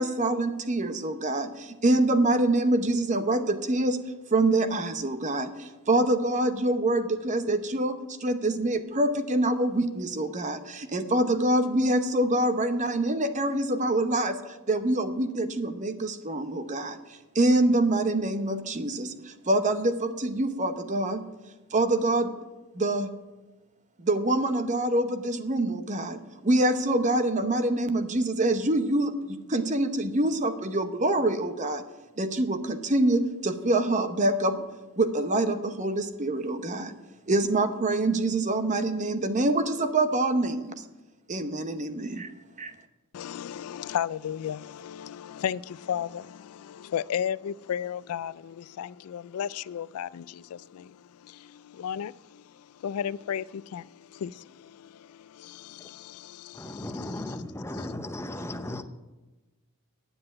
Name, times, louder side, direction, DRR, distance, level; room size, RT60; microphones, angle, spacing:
voice 1, 0.0-17.0 17.3-21.2 21.7-22.3 22.7-23.1 24.0-31.8 32.2-34.7 35.0-36.9 37.3-40.8 41.3-42.3 42.6-42.7, right 2 dB, 35° right, 0.8 m, -25 dB
voice 2, 43.1-51.0 51.2-52.4 52.8-57.4 57.7-57.9 58.3-58.7, left 9 dB, 75° left, 0.3 m, -35 dB
voice 3, 56.5-58.8, left 1 dB, 10° left, 0.6 m, -36 dB
9.8 x 7.7 x 8.8 m
head